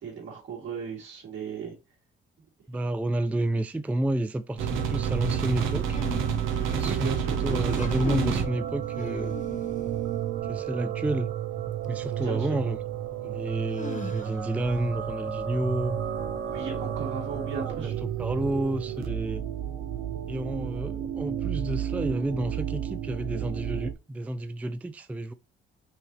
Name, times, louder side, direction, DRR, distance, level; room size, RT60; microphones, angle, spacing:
voice 1, 0.0-1.8 6.8-7.8 12.1-12.7 16.5-18.0, right 6 dB, 70° right, 2.7 m, -36 dB
voice 2, 2.7-6.0 6.7-9.4 10.4-11.3 11.9-12.8 13.2-16.0 17.4-17.8 18.2-19.4 20.3-25.3, right 1 dB, 5° right, 0.3 m, -30 dB
sound 1, 4.6-23.9, right 8 dB, 85° right, 0.9 m, -31 dB
sound 2, 5.8-7.0 7.6-8.5 9.0-9.9 11.8-11.9 13.7-14.6, left 7 dB, 40° left, 0.7 m, -39 dB
5.7 x 2.7 x 3.1 m
cardioid pair, 90°, 20 cm